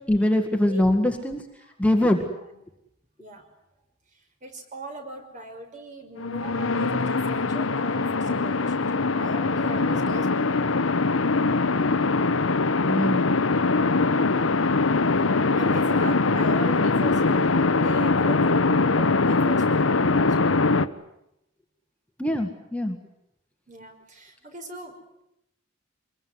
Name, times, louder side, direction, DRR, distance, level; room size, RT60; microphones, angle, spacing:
voice 1, 0.1-1.4 1.8-2.3 12.9-13.3 22.2-23.0, left 1 dB, 5° left, 3 dB, 1.9 m, -22 dB
voice 2, 0.7-1.1 1.6-1.7 2.5-2.7 3.2-3.5 4.1-10.6 15.6-18.5 19.0-20.3 23.7-25.2, right 1 dB, 40° right, 5 dB, 5.5 m, -39 dB
sound 1, 6.2-20.9, left 3 dB, 75° left, 1.1 m, -22 dB
25.0 x 22.0 x 9.7 m, 0.81 s
head